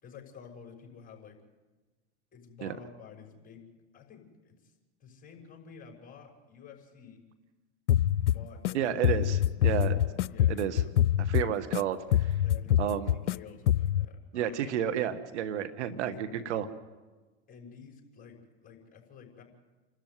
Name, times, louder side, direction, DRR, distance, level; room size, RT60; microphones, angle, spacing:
voice 1, 0.0-1.4 2.3-4.7 5.0-7.2 8.3-9.3 9.6-10.0 10.3-11.1 12.4-14.6 16.1-16.3 17.5-19.4, left 6 dB, 25° left, 1 dB, 6.1 m, -51 dB
sound 1, 7.9-8.7 9.0-11.8 12.1-13.4 13.7-14.1, left 11 dB, 85° left, 0.6 m, -25 dB
voice 2, 8.7-10.0 10.5-10.8 11.2-12.3 12.8-13.1 14.3-16.7, right 10 dB, 75° right, 10 dB, 1.5 m, -31 dB
28.5 x 13.0 x 9.6 m, 1.2 s
hypercardioid pair, 100°, 35 cm